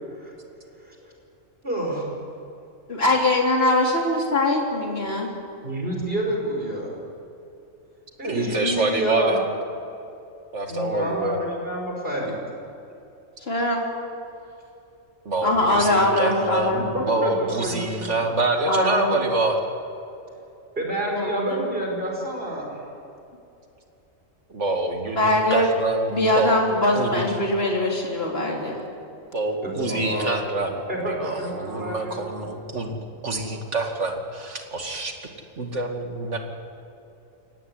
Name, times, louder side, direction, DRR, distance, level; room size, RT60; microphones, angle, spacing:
voice 1, 0.8-1.1 1.6-2.0 5.6-6.9 8.2-9.4 10.7-12.3 15.7-15.8 16.7-18.3 20.8-22.8 29.6-30.4 30.9-32.5, right 1 dB, 45° right, -1 dB, 5.7 m, -29 dB
voice 2, 2.9-5.3 13.5-13.8 15.4-16.8 18.7-19.2 21.2-21.6 25.2-25.7 26.1-28.8, left 1 dB, 50° left, -1 dB, 3.7 m, -22 dB
voice 3, 8.2-9.4 10.5-11.4 15.3-19.6 24.5-26.5 27.0-27.3 29.3-35.3 35.6-36.5, right 2 dB, 60° right, 3 dB, 2.6 m, -26 dB
23.5 x 18.0 x 9.7 m, 2.8 s
omnidirectional pair, 1.4 m